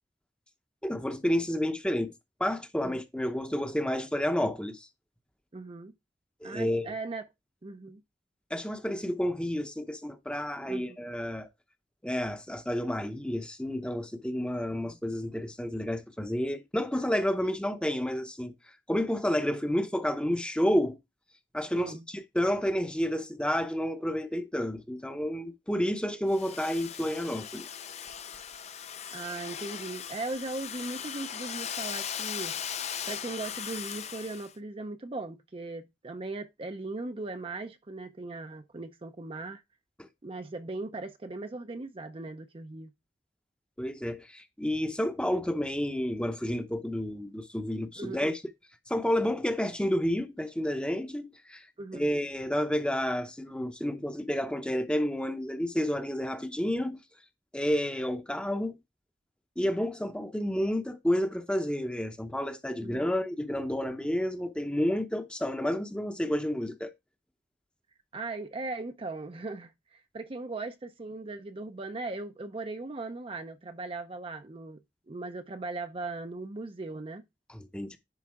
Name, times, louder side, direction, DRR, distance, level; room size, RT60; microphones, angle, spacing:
voice 1, 0.8-2.1 2.4-4.9 6.4-6.9 8.5-11.5 12.0-18.5 18.9-21.0 21.5-27.7 40.0-40.1 43.8-48.4 48.9-51.7 51.9-57.0 57.5-58.8 59.6-66.9 77.5-78.0, equal, 5° left, 0.8 m, -30 dB
voice 2, 5.5-5.9 6.4-7.2 7.6-8.0 10.6-11.0 14.8-15.0 21.7-22.1 29.1-32.6 33.1-39.6 40.2-42.9 48.0-48.3 51.8-52.1 62.8-63.1 68.1-74.8 75.1-77.2, right 3 dB, 30° right, 0.6 m, -38 dB
Domestic sounds home sounds, 26.3-34.5, left 8 dB, 40° left, 0.5 m, -38 dB
10.5 x 4.0 x 3.6 m
head